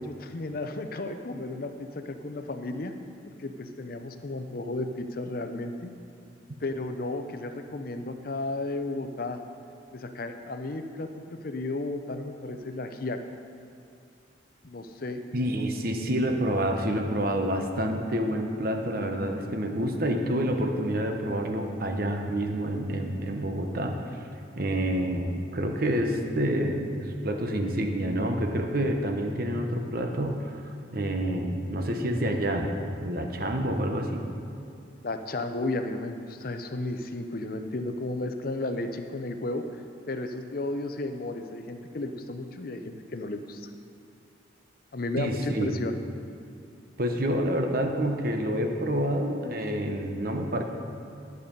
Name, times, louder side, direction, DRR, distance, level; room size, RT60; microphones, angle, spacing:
voice 1, 0.0-2.9 3.2-5.9 6.6-9.4 9.9-13.2 14.6-15.7 35.0-39.6 40.1-43.7 44.9-46.0, left 2 dB, 50° left, 7 dB, 0.6 m, -33 dB
voice 2, 15.3-24.2 24.6-30.6 30.9-34.2 45.2-45.8 47.0-50.6, right 1 dB, 50° right, 3 dB, 0.9 m, -28 dB
11.5 x 6.8 x 5.3 m, 2.5 s
head